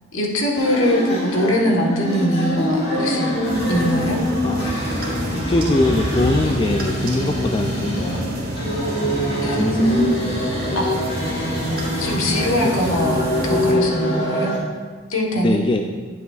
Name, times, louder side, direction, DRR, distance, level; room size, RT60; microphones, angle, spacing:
voice 1, 0.1-3.3 3.7-4.2 9.4-10.4 10.7-11.0 11.7-14.5 15.1-15.6, equal, 80° left, -1 dB, 1.4 m, -22 dB
sound 1, 0.6-14.6, left 1 dB, 55° left, 1.7 m, -24 dB
sound 2, 3.4-13.7, right 1 dB, 45° right, 1.7 m, -28 dB
voice 2, 4.4-8.3 9.5-10.1 10.7-10.8 15.4-15.8, left 2 dB, 25° left, 3 dB, 0.4 m, -22 dB
9.4 x 8.2 x 2.4 m, 1.5 s
head